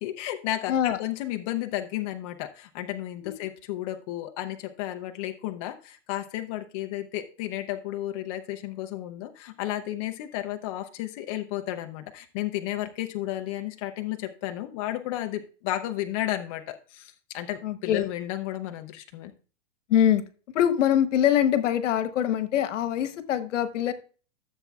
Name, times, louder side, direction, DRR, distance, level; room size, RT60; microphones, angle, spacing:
voice 1, 0.0-19.3, left 14 dB, 30° left, 0.5 m, -33 dB
voice 2, 0.7-1.0 3.2-3.4 17.6-18.1 19.9-20.2 20.5-23.9, left 10 dB, 75° left, 1.1 m, -23 dB
14.5 x 7.0 x 2.3 m
supercardioid pair, 155°, 37 cm